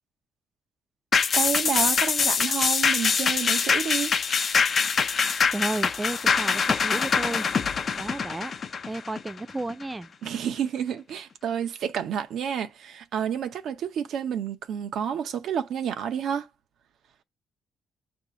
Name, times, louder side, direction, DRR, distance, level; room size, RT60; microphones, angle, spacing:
sound 1, 1.1-9.8 10.2-10.3, left 5 dB, 45° left, 0.5 m, -24 dB
voice 1, 1.3-4.1 10.2-16.5, right 8 dB, 75° right, 0.7 m, -30 dB
voice 2, 5.2-7.5 8.0-8.5 8.9-10.1, right 2 dB, 15° right, 0.4 m, -33 dB
8.1 x 2.7 x 5.6 m
cardioid pair, 90°, 0 cm